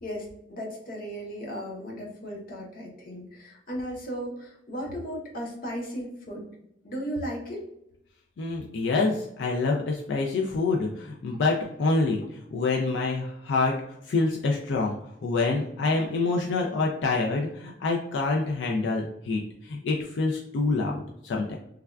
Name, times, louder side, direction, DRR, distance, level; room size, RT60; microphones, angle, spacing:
voice 1, 0.0-6.5 6.8-7.7, equal, 50° left, -1 dB, 0.8 m, -36 dB
voice 2, 8.4-13.8 14.1-21.6, left 3 dB, 85° left, 0 dB, 0.3 m, -26 dB
3.3 x 2.2 x 2.3 m, 0.79 s
head